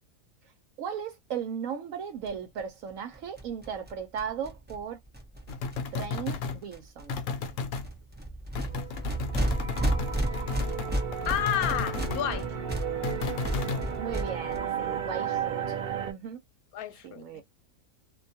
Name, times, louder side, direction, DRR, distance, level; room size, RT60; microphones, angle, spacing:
voice 1, 0.8-5.0 5.9-7.2 14.0-15.8 16.1-16.4 17.0-17.4, right 7 dB, 70° right, 1.0 m, -36 dB
sound 1, 2.2-2.3 2.6-2.7 2.9-3.0 3.1-6.4 6.7-7.1 7.4-14.6, right 1 dB, 15° right, 0.3 m, -33 dB
sound 2, 5.5-6.6 7.1-7.9 8.5-12.2 13.0-13.9, left 5 dB, 70° left, 0.9 m, -34 dB
sound 3, 8.7-16.1, right 8 dB, 85° right, 0.4 m, -34 dB
voice 2, 10.3-10.9 11.3-12.5 16.7-17.4, left 10 dB, 90° left, 1.1 m, -31 dB
2.5 x 2.2 x 2.7 m
omnidirectional pair, 1.5 m